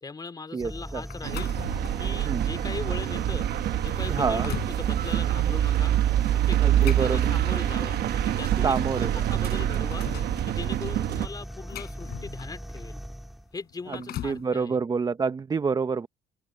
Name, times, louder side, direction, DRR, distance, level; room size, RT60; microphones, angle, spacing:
voice 1, 0.0-1.5 2.0-5.9 6.3-10.1 10.5-13.0 13.5-14.8, left 4 dB, 25° left, 2.5 m, -39 dB
voice 2, 0.5-1.0 2.3-2.4 4.1-4.5 6.6-7.3 8.6-9.2 13.9-14.0 14.2-16.1, right 5 dB, 25° right, 0.7 m, -27 dB
sound 1, 0.6-13.6, equal, ahead, 3.1 m, -39 dB
sound 2, 1.1-2.1 2.7-2.9 3.5-3.6 4.0-4.8 6.5-7.8 8.9-9.0 9.3-10.4 11.2-12.7 13.6-14.5, left 13 dB, 70° left, 5.7 m, -40 dB
sound 3, 1.2-11.3, right 12 dB, 65° right, 1.2 m, -26 dB
open air
cardioid pair, 110°, 17 cm